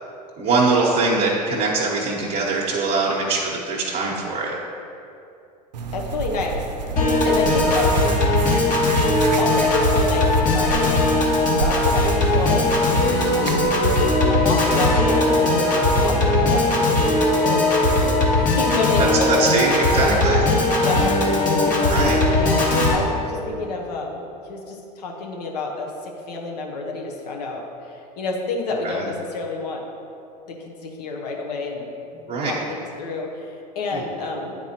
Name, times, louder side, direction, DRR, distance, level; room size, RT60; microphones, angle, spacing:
voice 1, 0.4-4.6 7.4-7.6 19.3-20.5 21.9-22.2 28.8-29.0 32.3-32.6 33.9-34.0, right 3 dB, 35° right, -5 dB, 1.0 m, -22 dB
sound 1, 5.7-13.7, right 4 dB, 85° right, 0.5 m, -30 dB
voice 2, 5.9-6.6 7.2-8.0 9.4-10.3 10.5-10.9 11.6-12.6 13.9-16.7 17.0-20.2 20.8-29.8 30.5-31.9 32.4-34.5, left 3 dB, 75° left, 0 dB, 1.1 m, -29 dB
Piano / Organ, 7.0-23.0, left 2 dB, 40° left, 1.4 m, -19 dB
9.2 x 4.5 x 2.9 m, 2.7 s
hypercardioid pair, 80°, 21 cm